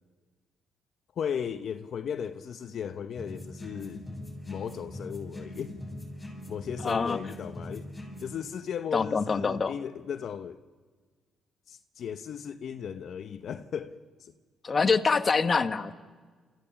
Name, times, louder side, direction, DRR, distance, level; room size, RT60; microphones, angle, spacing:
voice 1, 1.2-4.0 4.5-5.8 6.5-7.9 8.2-10.6 11.7-14.3, left 8 dB, 60° left, 0.8 m, -36 dB
sound 1, 3.2-8.4, left 1 dB, 15° left, 7.4 m, -41 dB
voice 2, 6.8-7.2 8.9-9.7 14.6-15.9, left 5 dB, 35° left, 1.1 m, -25 dB
29.0 x 14.5 x 7.1 m
cardioid pair, 90°, 0 cm